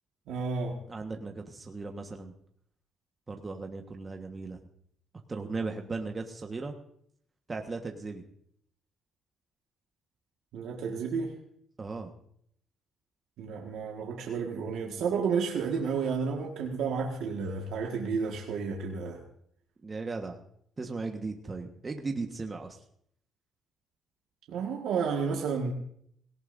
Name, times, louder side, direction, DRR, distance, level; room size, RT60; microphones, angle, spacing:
voice 1, 0.3-0.8 10.5-11.3 13.4-19.2 24.5-25.7, right 5 dB, 85° right, 0 dB, 1.7 m, -31 dB
voice 2, 0.9-2.3 3.3-4.6 5.3-6.7 7.5-8.2 11.8-12.1 19.8-20.3 20.8-22.8, right 3 dB, 30° right, 3 dB, 1.4 m, -37 dB
18.0 x 17.5 x 2.7 m, 0.68 s
cardioid pair, 90°, 0 cm